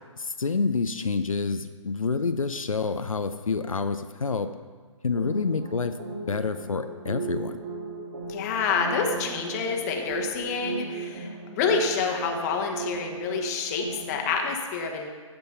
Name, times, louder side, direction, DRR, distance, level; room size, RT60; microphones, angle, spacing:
voice 1, 0.2-4.5 5.0-6.0 6.3-7.6, left 4 dB, 85° left, 9 dB, 0.7 m, -28 dB
sound 1, 5.2-14.4, right 3 dB, 40° right, 2.1 m, -37 dB
voice 2, 8.3-15.1, left 5 dB, 30° left, 2 dB, 1.2 m, -28 dB
15.0 x 5.4 x 5.7 m, 1.5 s
figure-of-eight pair, 140°, 17 cm